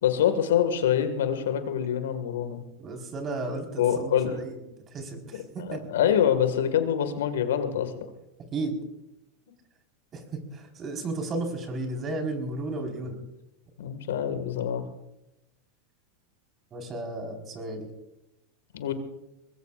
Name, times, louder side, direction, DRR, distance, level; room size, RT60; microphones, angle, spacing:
voice 1, 0.0-2.6 3.8-4.4 5.7-8.1 13.8-14.8 18.7-18.9, left 9 dB, 75° left, 9 dB, 1.9 m, -25 dB
voice 2, 2.8-4.6 4.9-6.0 8.5-8.8 10.1-13.2 16.7-17.9, right 2 dB, 35° right, 3 dB, 4.6 m, -34 dB
23.0 x 20.5 x 2.5 m, 0.94 s
hypercardioid pair, 100°, 0 cm